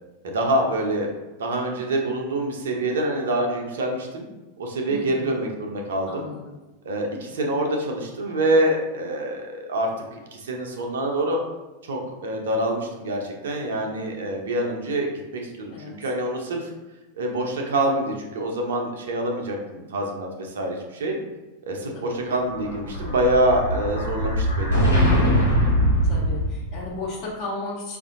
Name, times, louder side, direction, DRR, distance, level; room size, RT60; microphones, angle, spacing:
voice 1, 0.2-1.1 1.4-4.2 4.6-6.3 6.8-11.4 11.8-16.7 17.2-21.2 21.6-25.1, right 1 dB, 60° right, 1 dB, 0.6 m, -26 dB
voice 2, 4.9-5.4 6.1-6.6 15.7-15.9 21.9-22.1 26.0-28.0, left 3 dB, 45° left, -4 dB, 1.2 m, -35 dB
Explosion, 22.3-26.9, equal, 85° left, 1.5 m, -22 dB
4.9 x 2.6 x 2.5 m, 1.1 s
figure-of-eight pair, 90°, 0 cm